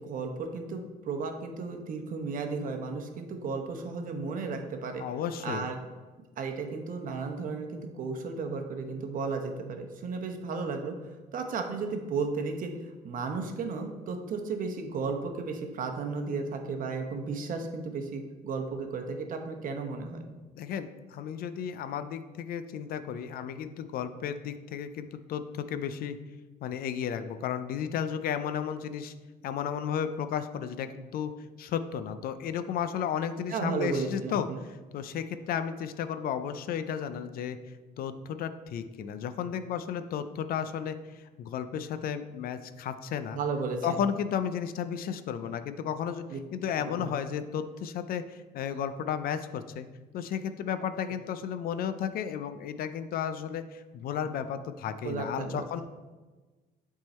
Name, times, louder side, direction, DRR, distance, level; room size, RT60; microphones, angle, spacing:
voice 1, 0.0-5.0 5.4-5.8 6.4-10.9 11.3-20.2 33.5-34.6 43.3-44.0 46.3-46.4 46.8-47.1 55.0-55.6, right 4 dB, 55° right, 5 dB, 0.9 m, -34 dB
voice 2, 5.0-5.7 20.6-26.2 26.6-29.1 29.4-31.3 31.6-34.5 34.9-37.6 38.0-43.4 43.8-46.2 46.5-49.9 50.1-55.8, left 8 dB, 60° left, 11 dB, 0.4 m, -33 dB
7.8 x 3.7 x 4.3 m, 1.3 s
cardioid pair, 110°, 17 cm